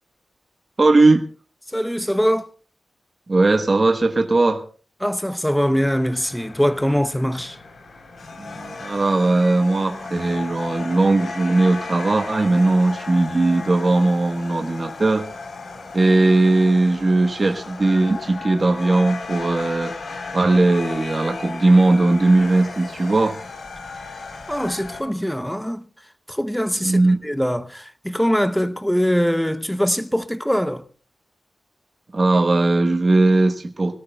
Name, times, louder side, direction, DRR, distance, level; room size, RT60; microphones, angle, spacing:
voice 1, 0.8-1.2 3.3-4.6 8.4-15.2 15.9-19.9 20.3-23.4 26.8-27.2 32.1-34.0, right 2 dB, 30° right, 1.2 m, -18 dB
voice 2, 1.7-2.5 5.0-7.6 24.5-25.9 26.3-30.8, equal, ahead, 0.7 m, -22 dB
sound 1, 5.7-25.0, left 4 dB, 65° left, 3.7 m, -35 dB
24.5 x 17.5 x 2.3 m
wide cardioid pair, 175°, 0 cm